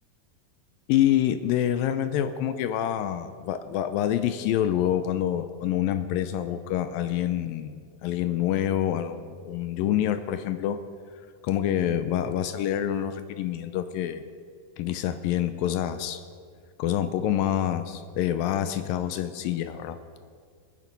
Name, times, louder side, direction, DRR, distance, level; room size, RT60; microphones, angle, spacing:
voice 1, 0.9-10.8 11.4-14.2 14.8-16.2 16.8-20.0, left 11 dB, 80° left, 10 dB, 2.3 m, -27 dB
23.0 x 9.6 x 5.3 m, 2.1 s
omnidirectional pair, 4.2 m